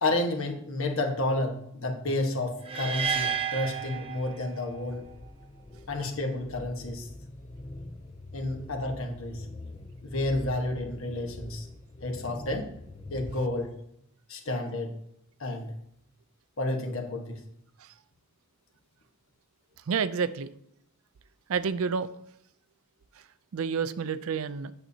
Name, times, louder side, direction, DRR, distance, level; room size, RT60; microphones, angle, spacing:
voice 1, 0.0-5.0 5.9-7.1 8.3-9.5 10.0-11.7 12.0-12.7 13.1-13.7 14.3-14.9 15.4-15.7 16.6-17.4, left 2 dB, 65° left, 4 dB, 1.2 m, -30 dB
sound 1, 2.6-4.8, right 7 dB, 25° right, 0.7 m, -31 dB
sound 2, 3.3-13.7, left 2 dB, 25° left, 0.5 m, -45 dB
voice 2, 19.9-20.5 21.5-22.1 23.2-23.3 23.5-24.7, right 6 dB, 65° right, 14 dB, 0.4 m, -29 dB
8.8 x 6.9 x 2.8 m, 0.73 s
head